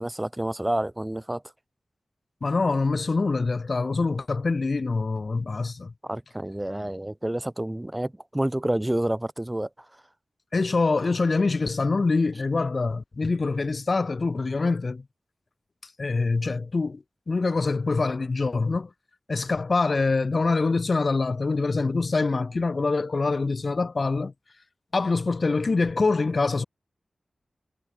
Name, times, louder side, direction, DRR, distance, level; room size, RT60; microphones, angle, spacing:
voice 1, 0.0-1.4 6.1-9.7, right 1 dB, 15° right, 0.7 m, -28 dB
voice 2, 2.4-5.9 10.5-15.0 15.8-18.9 19.3-24.3 24.9-26.6, left 3 dB, 55° left, 1.1 m, -25 dB
cardioid pair, 60°, 0 cm